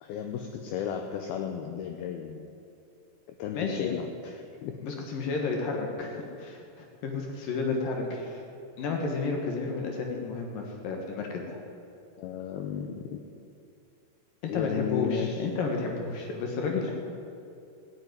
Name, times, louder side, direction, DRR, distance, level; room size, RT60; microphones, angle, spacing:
voice 1, 0.0-2.4 3.4-4.7 7.4-7.5 12.2-13.2 14.5-15.5, left 8 dB, 90° left, 5 dB, 2.1 m, -34 dB
voice 2, 3.5-3.9 4.8-8.4 8.8-11.6 14.4-16.9, left 4 dB, 65° left, 1 dB, 2.5 m, -32 dB
15.0 x 7.8 x 9.4 m, 2.6 s
omnidirectional pair, 5.3 m